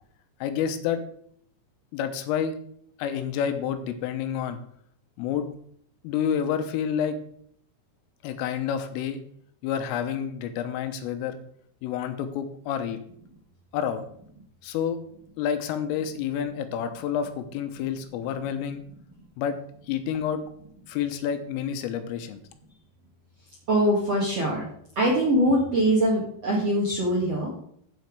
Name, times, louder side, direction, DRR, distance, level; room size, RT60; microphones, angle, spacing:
voice 1, 0.4-1.0 1.9-2.6 3.0-4.6 5.2-5.5 6.0-7.2 8.2-9.2 9.6-11.4 11.8-13.0 13.7-14.0 14.6-15.0 15.4-18.8 19.4-19.6 19.9-20.4 20.9-22.4, left 8 dB, 85° left, 9 dB, 3.5 m, -29 dB
voice 2, 23.7-24.7 25.0-27.6, right 1 dB, 55° right, -4 dB, 1.7 m, -23 dB
13.5 x 6.3 x 4.8 m, 0.65 s
omnidirectional pair, 5.8 m